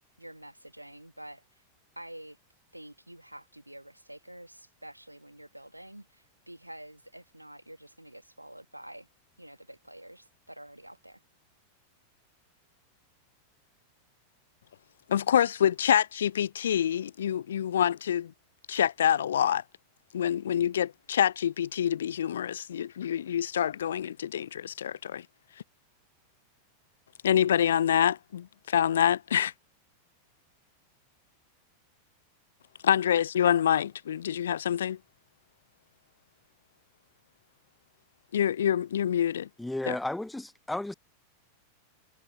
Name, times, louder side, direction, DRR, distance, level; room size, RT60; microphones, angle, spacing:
voice 1, 0.2-1.4 2.0-2.4 2.7-9.1 9.4-11.2, right 1 dB, 85° right, 5.5 m, -48 dB
voice 2, 15.1-18.3 18.7-19.6 20.1-25.2 27.2-29.5 32.8-35.0 38.3-39.5 39.9-40.0, left 9 dB, 65° left, 0.7 m, -26 dB
voice 3, 39.6-40.9, left 1 dB, 5° left, 0.7 m, -33 dB
figure-of-eight pair, 90°, 0 cm